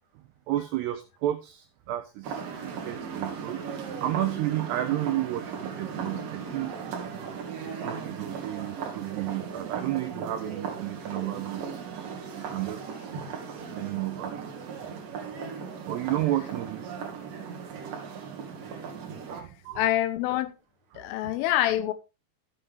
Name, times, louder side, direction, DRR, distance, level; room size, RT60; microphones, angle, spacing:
voice 1, 0.2-3.6 4.0-6.7 7.7-11.8 12.4-12.9 13.7-14.5 15.9-16.9 19.4-20.0 20.9-21.3, right 14 dB, 90° right, 2.3 m, -32 dB
sound 1, 2.2-19.4, right 6 dB, 55° right, 2.9 m, -37 dB
voice 2, 19.8-20.5 21.0-21.9, left 13 dB, 90° left, 3.4 m, -26 dB
12.5 x 7.8 x 3.4 m
omnidirectional pair, 5.6 m